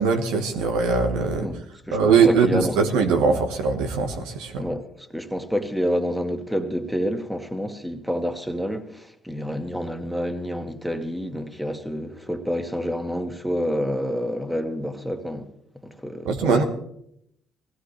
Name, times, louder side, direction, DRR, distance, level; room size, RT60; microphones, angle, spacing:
voice 1, 0.0-1.5 1.9-4.7 16.2-16.6, right 5 dB, 80° right, 1.4 m, -21 dB
voice 2, 1.9-2.7 3.3-3.4 4.6-4.8 5.1-15.4 15.8-16.6, equal, 5° right, 1.9 m, -28 dB
17.5 x 16.0 x 3.3 m
hypercardioid pair, 60°, 0 cm